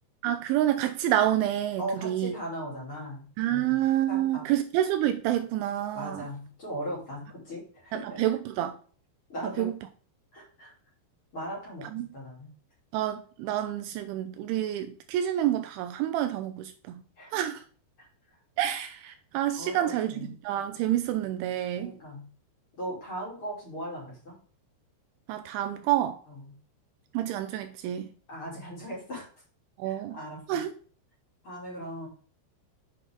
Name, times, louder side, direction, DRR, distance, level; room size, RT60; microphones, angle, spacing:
voice 1, 0.2-2.3 3.4-6.2 7.9-8.7 9.6-9.7 11.9-12.1 12.9-17.0 17.3-17.6 18.6-20.2 20.4-21.9 25.3-26.2 27.1-28.1 29.8-30.2 30.5-30.7, right 12 dB, 80° right, 2.9 m, -28 dB
voice 2, 1.8-4.4 5.9-8.2 9.3-9.7 10.3-10.7 11.3-12.5 17.2-17.4 18.0-18.1 19.6-20.3 21.7-22.3 22.8-24.3 26.3-26.5 28.3-29.3 29.8-30.6 31.4-32.1, right 1 dB, 30° left, 3.5 m, -38 dB
7.8 x 6.6 x 3.7 m
omnidirectional pair, 5.6 m